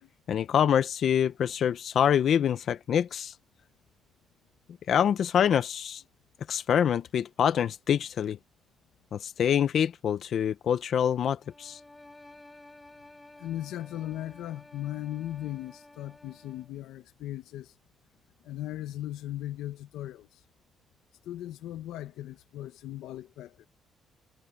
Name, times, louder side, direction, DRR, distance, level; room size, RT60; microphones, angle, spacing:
voice 1, 0.3-3.3 4.9-6.0 6.5-8.4 9.1-11.8, left 9 dB, 65° left, 0.9 m, -25 dB
sound 1, 11.4-16.8, left 2 dB, 15° left, 5.8 m, -53 dB
voice 2, 13.4-17.7 18.4-20.4 21.2-23.7, left 13 dB, 90° left, 1.0 m, -38 dB
cardioid pair, 90°, 0 cm